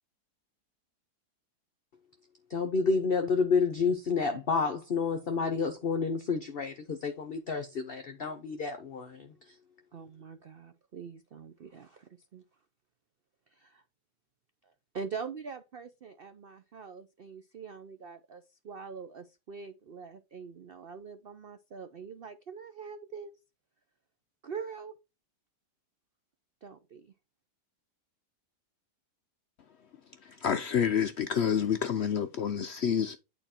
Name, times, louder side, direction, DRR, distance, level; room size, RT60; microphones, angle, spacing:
voice 1, 2.5-9.3, left 5 dB, 45° left, 0.8 m, -29 dB
voice 2, 9.9-12.4 13.5-13.8 14.9-23.3 24.4-24.9 26.6-27.1, right 5 dB, 65° right, 0.5 m, -43 dB
voice 3, 30.2-33.2, left 8 dB, 75° left, 0.6 m, -28 dB
8.9 x 4.2 x 4.3 m
omnidirectional pair, 1.8 m